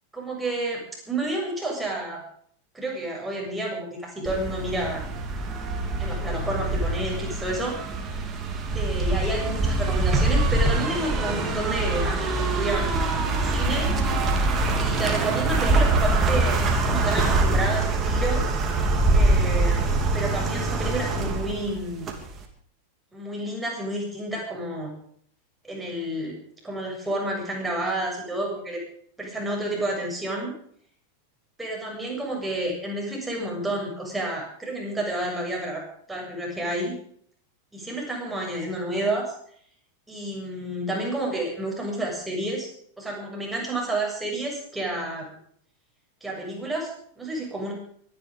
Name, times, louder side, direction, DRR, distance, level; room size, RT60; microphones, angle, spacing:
voice 1, 0.1-2.2 2.7-5.0 6.0-7.8 8.7-13.9 14.7-18.5 19.1-22.1 23.1-24.9 25.6-26.4 26.6-28.8 29.2-30.6 31.6-35.8 36.1-37.0 37.7-39.3 40.1-42.7 43.0-45.4 46.2-47.7, right 1 dB, 5° right, -2 dB, 7.3 m, -30 dB
sound 1, 4.3-22.4, right 2 dB, 25° right, 3.0 m, -24 dB
23.5 x 10.5 x 5.3 m, 0.62 s
figure-of-eight pair, 90°, 0 cm